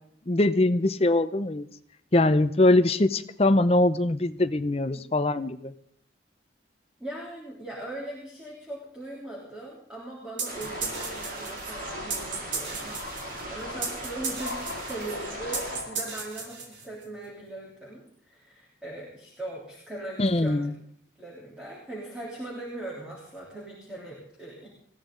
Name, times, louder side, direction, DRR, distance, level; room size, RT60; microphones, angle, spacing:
voice 1, 0.3-1.7 2.1-5.7 20.2-20.7, left 2 dB, 30° left, 11 dB, 0.6 m, -22 dB
voice 2, 7.0-20.7 21.2-24.7, right 1 dB, 5° right, -7 dB, 3.4 m, -40 dB
sound 1, 10.4-15.8, right 2 dB, 45° right, 2.9 m, -39 dB
sound 2, 10.4-17.1, right 5 dB, 80° right, 3.1 m, -35 dB
sound 3, 10.5-16.5, left 4 dB, 70° left, 1.0 m, -41 dB
20.5 x 15.0 x 3.9 m, 0.62 s
head